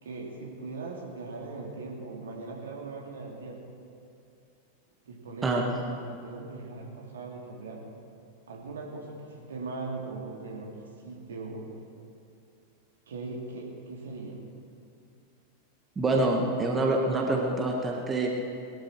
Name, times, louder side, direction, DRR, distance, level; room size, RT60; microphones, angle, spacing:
voice 1, 0.0-3.8 5.1-5.7 6.0-7.8 8.5-10.7 11.0-11.7 13.1-14.4, right 3 dB, 65° right, -1 dB, 2.7 m, -39 dB
voice 2, 15.9-18.3, right 2 dB, 15° right, 0 dB, 1.7 m, -26 dB
20.5 x 12.5 x 4.5 m, 2.5 s
figure-of-eight pair, 90°, 0 cm